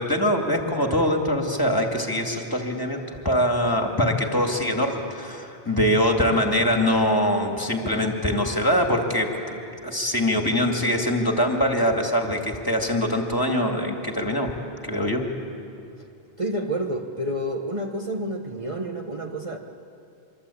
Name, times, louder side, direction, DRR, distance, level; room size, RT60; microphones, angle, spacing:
voice 1, 0.0-14.5 14.8-15.2, equal, 20° left, 2 dB, 2.5 m, -23 dB
voice 2, 16.4-19.6, right 1 dB, 30° right, 1 dB, 1.3 m, -29 dB
25.5 x 25.0 x 8.6 m, 2.6 s
omnidirectional pair, 1.0 m